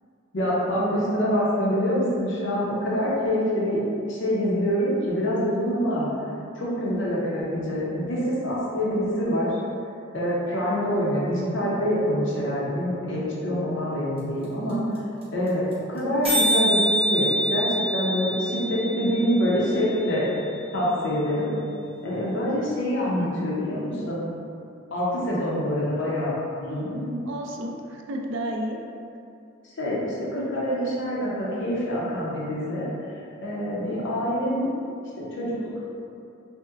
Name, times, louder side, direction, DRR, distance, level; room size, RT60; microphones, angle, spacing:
voice 1, 0.3-3.8 4.1-6.1 6.6-9.5 10.1-14.8 15.3-20.2 20.7-21.5 22.0-24.3 24.9-26.9 29.8-32.9 33.4-34.7 35.2-35.5, equal, 60° left, -6 dB, 0.7 m, -25 dB
sound 1, 14.2-14.3 14.4-14.5 14.7-15.0 15.2-15.3 15.5-15.7 16.0-16.1 16.2-20.2, equal, 30° right, 0.8 m, -26 dB
voice 2, 26.6-28.8, right 1 dB, 65° right, 1 dB, 0.4 m, -32 dB
5.3 x 2.1 x 2.4 m, 2.6 s
head